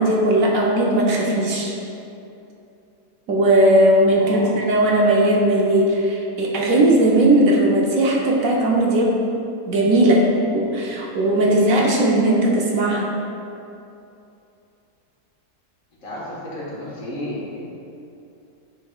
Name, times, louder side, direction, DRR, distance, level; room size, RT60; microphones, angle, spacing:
voice 1, 0.0-1.7 3.3-9.2 9.7-13.1, right 1 dB, 65° right, -2 dB, 1.1 m, -18 dB
voice 2, 4.1-4.5 16.0-17.7, left 1 dB, 55° left, -7 dB, 1.9 m, -32 dB
10.0 x 4.3 x 2.4 m, 2.7 s
omnidirectional pair, 1.6 m